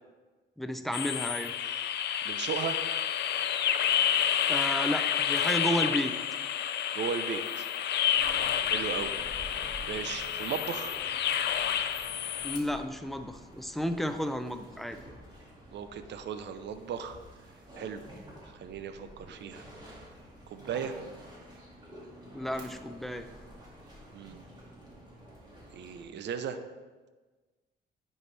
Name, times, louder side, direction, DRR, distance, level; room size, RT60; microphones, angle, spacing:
voice 1, 0.6-1.5 4.5-6.1 12.4-15.0 22.3-23.3, equal, ahead, 7 dB, 0.5 m, -32 dB
sound 1, 0.9-12.6, left 9 dB, 60° left, 0.4 m, -29 dB
voice 2, 2.2-2.8 6.9-7.7 8.7-9.1 9.9-11.0 15.7-17.2 17.8-18.0 18.6-20.0 20.5-21.0 24.1-24.4 25.7-26.6, right 7 dB, 60° right, 10 dB, 0.6 m, -36 dB
sound 2, 8.1-26.1, equal, 20° right, 2.1 m, -50 dB
9.6 x 4.5 x 3.3 m, 1.3 s
cardioid pair, 90°, 20 cm